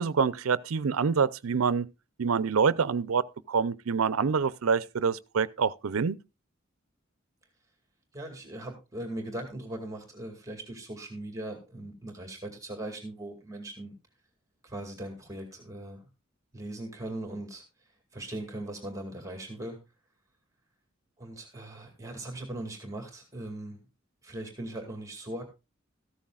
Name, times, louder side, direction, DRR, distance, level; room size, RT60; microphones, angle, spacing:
voice 1, 0.0-1.9 2.2-6.2, right 5 dB, 85° right, 0.5 m, -26 dB
voice 2, 8.1-13.9 14.6-16.1 16.5-17.6 18.1-19.8 21.2-23.9 24.2-25.4, right 1 dB, 15° right, 2.2 m, -39 dB
14.0 x 13.0 x 2.4 m
head